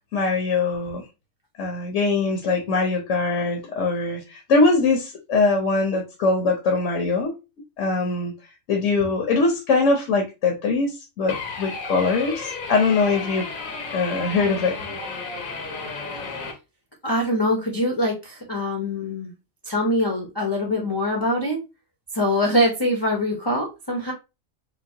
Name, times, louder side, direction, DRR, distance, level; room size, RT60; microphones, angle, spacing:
voice 1, 0.1-1.0 1.6-7.4 7.8-8.3 8.7-13.4 13.9-14.8, left 3 dB, 70° left, 1.1 m, -22 dB
sound 1, 11.3-16.5, left 4 dB, 90° left, 1.4 m, -33 dB
voice 2, 17.0-19.3 19.6-21.6 22.1-24.1, left 1 dB, 25° left, 0.7 m, -23 dB
5.1 x 2.2 x 2.7 m
omnidirectional pair, 1.4 m